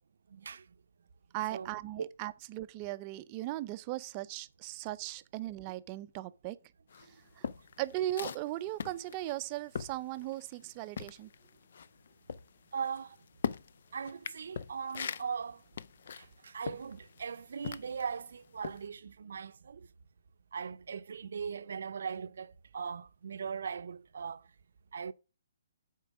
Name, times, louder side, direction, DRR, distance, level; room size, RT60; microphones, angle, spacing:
voice 1, 0.3-0.6 1.5-1.7 2.0-2.1 12.7-13.2 13.9-15.6 16.2-19.8 20.5-24.4 24.9-25.1, right 6 dB, 70° right, 0.6 m, -39 dB
voice 2, 1.3-6.6 7.0-7.5 7.8-11.3, right 15 dB, 30° right, 0.5 m, -38 dB
sound 1, 6.9-10.7 10.9-18.2 18.6-18.9, left 7 dB, 60° left, 0.4 m, -41 dB
8.4 x 4.5 x 6.0 m
hypercardioid pair, 155°, 0 cm